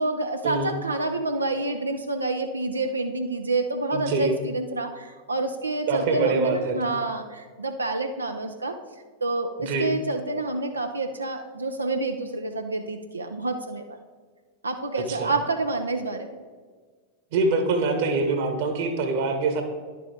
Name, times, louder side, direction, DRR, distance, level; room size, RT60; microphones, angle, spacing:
voice 1, 0.0-8.8 9.2-14.0 14.6-16.4, right 2 dB, 80° right, 5 dB, 0.5 m, -28 dB
voice 2, 3.9-4.4 5.9-6.9 9.6-9.9 15.1-15.3 17.3-19.6, right 3 dB, 55° right, 6 dB, 1.3 m, -24 dB
10.5 x 6.9 x 3.5 m, 1.5 s
figure-of-eight pair, 90°, 0 cm